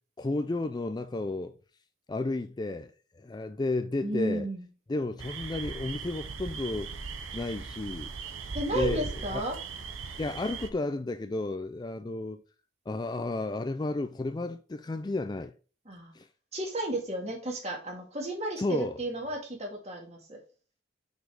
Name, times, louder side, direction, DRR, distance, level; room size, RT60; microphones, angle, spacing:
voice 1, 0.2-1.6 2.1-4.5 4.9-7.0 7.3-8.1 8.7-9.4 10.2-12.4 12.9-15.5 16.1-16.3 18.6-18.9, left 2 dB, 20° left, 0.3 m, -32 dB
voice 2, 4.0-4.6 8.5-9.6 15.9-16.1 16.5-20.4, right 1 dB, 30° right, 2.1 m, -33 dB
sound 1, 5.2-10.7, right 4 dB, 75° right, 0.9 m, -39 dB
6.2 x 5.3 x 4.8 m
head